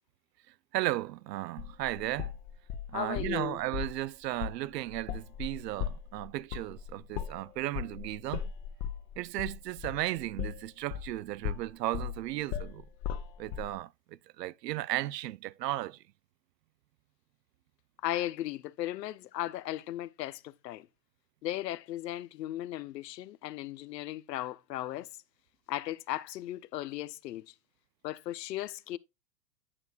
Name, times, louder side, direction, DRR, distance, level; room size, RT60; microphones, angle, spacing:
voice 1, 0.7-2.3 2.9-8.5 9.2-12.9 13.4-16.0, right 15 dB, 75° right, 0.5 m, -35 dB
sound 1, 1.6-3.4 3.7-4.0 4.4-4.6 4.9-11.2 11.4-13.7, left 9 dB, 40° left, 0.8 m, -37 dB
voice 2, 2.9-3.6 18.0-20.9 21.4-25.1 25.7-27.5 28.0-29.0, left 14 dB, 80° left, 0.6 m, -36 dB
8.5 x 6.7 x 2.3 m
hypercardioid pair, 110°, 49 cm